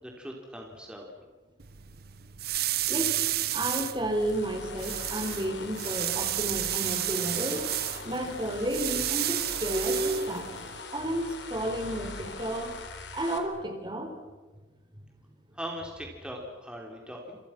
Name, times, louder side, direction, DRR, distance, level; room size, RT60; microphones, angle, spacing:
voice 1, 0.0-1.1 15.5-17.4, equal, 5° right, 0 dB, 3.8 m, -40 dB
sound 1, 1.6-10.8, right 14 dB, 55° right, 0.9 m, -32 dB
voice 2, 2.9-3.2 3.5-7.6 8.0-10.5 10.9-12.7 13.1-14.1, right 1 dB, 25° right, 4 dB, 4.2 m, -31 dB
sound 2, 4.0-13.4, left 3 dB, 75° left, 3.9 m, -42 dB
30.0 x 28.0 x 6.1 m, 1.3 s
head